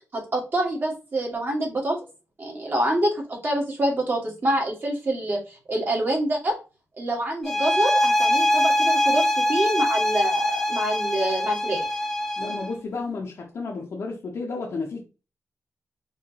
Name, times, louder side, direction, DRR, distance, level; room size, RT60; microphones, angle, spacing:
voice 1, 0.1-2.0 2.4-6.6 7.0-11.8, right 1 dB, 40° right, 1.9 m, -26 dB
sound 1, 7.4-12.7, left 1 dB, 10° left, 0.6 m, -23 dB
voice 2, 12.4-15.0, left 4 dB, 55° left, 0.9 m, -32 dB
4.8 x 3.1 x 2.9 m
wide cardioid pair, 125°, 5 cm